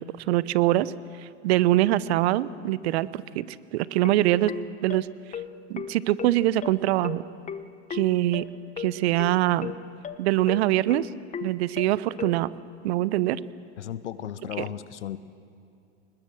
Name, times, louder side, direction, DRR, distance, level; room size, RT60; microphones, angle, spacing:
voice 1, 0.3-0.9 1.4-3.4 3.7-4.5 4.8-5.1 5.7-7.2 7.9-8.4 8.8-9.7 10.2-11.1 11.4-12.5 12.8-13.4, right 15 dB, 65° right, 17 dB, 0.9 m, -23 dB
sound 1, 4.0-12.4, left 7 dB, 20° left, 1.1 m, -36 dB
voice 2, 13.8-15.2, left 10 dB, 85° left, 15 dB, 1.1 m, -35 dB
27.0 x 20.5 x 7.7 m, 2.7 s
hypercardioid pair, 95°, 34 cm